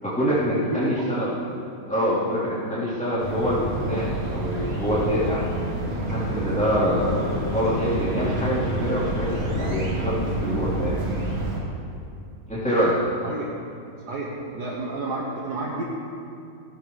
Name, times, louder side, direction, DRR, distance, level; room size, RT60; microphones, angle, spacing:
voice 1, 0.0-1.3 1.9-5.4 6.1-11.0 12.5-13.0, equal, 5° left, -11 dB, 3.5 m, -25 dB
voice 2, 0.7-1.0 13.2-13.5 14.1-15.8, right 2 dB, 85° right, -6 dB, 2.0 m, -30 dB
sound 1, 3.2-11.6, right 1 dB, 60° right, 2.3 m, -28 dB
16.0 x 13.0 x 3.3 m, 2.5 s
omnidirectional pair, 1.7 m